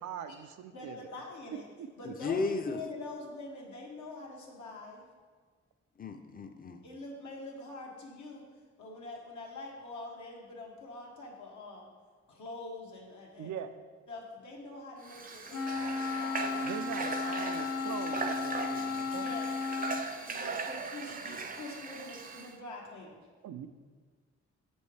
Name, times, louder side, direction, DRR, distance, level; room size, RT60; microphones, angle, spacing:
voice 1, 0.0-1.0 1.8-1.9 13.4-13.7 16.6-19.3 23.4-23.7, right 8 dB, 85° right, 9 dB, 0.5 m, -41 dB
voice 2, 0.7-1.7 2.0-5.1 6.8-8.4 8.8-11.9 12.3-13.5 14.1-16.8 19.1-19.9 20.2-23.2, left 2 dB, 80° left, -2 dB, 1.3 m, -45 dB
voice 3, 2.0-2.8 6.0-6.8, left 4 dB, 30° left, 6 dB, 0.6 m, -34 dB
Water / Water tap faucet, 15.0-22.5, right 4 dB, 30° right, 0.5 m, -39 dB
Wind instrument woodwind instrument, 15.5-20.1, left 4 dB, 60° left, 0.8 m, -34 dB
7.0 x 5.3 x 3.3 m, 1.5 s
cardioid pair, 75°, 29 cm